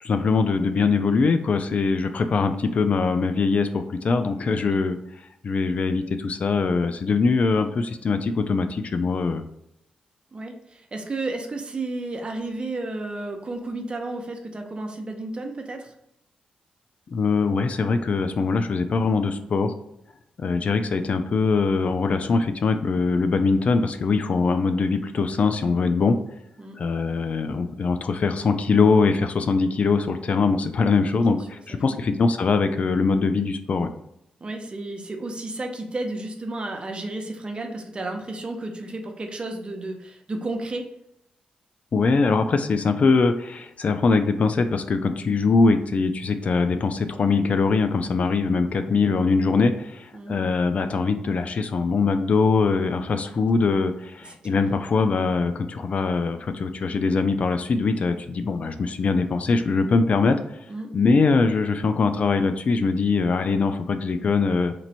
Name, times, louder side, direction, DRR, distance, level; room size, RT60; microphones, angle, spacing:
voice 1, 0.0-5.0 5.4-9.4 17.1-19.7 20.4-26.2 26.8-33.9 41.9-60.4 60.9-64.7, left 4 dB, 50° left, 8 dB, 0.3 m, -22 dB
voice 2, 4.4-4.8 10.3-15.9 26.6-26.8 31.7-32.0 34.4-40.9 50.1-50.4 54.3-54.6 60.7-60.9, right 2 dB, 40° right, 3 dB, 0.6 m, -32 dB
3.0 x 2.5 x 4.1 m, 0.80 s
cardioid pair, 75°, 3 cm